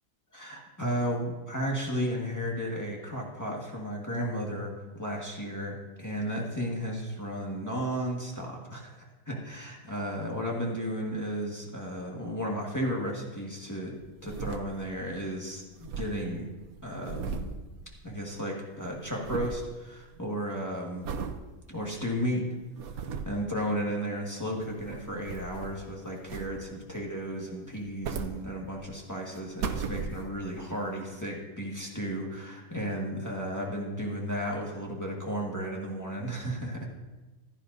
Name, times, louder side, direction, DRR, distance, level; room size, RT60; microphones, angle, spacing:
voice 1, 0.3-14.0 14.2-16.5 16.8-17.4 18.0-21.1 21.7-22.5 22.9-36.9, equal, 10° left, -2 dB, 1.5 m, -34 dB
sound 1, 14.0-15.1 15.4-15.5 15.6-18.4 18.7-19.7 20.2-20.5 21.0-21.4 21.9-22.0 22.6-23.4 24.4-25.9 26.3-26.9 27.7-28.9 29.3-30.5 31.1-31.2, right 6 dB, 75° right, 1.1 m, -37 dB
15.5 x 11.5 x 2.6 m, 1.2 s
omnidirectional pair, 1.5 m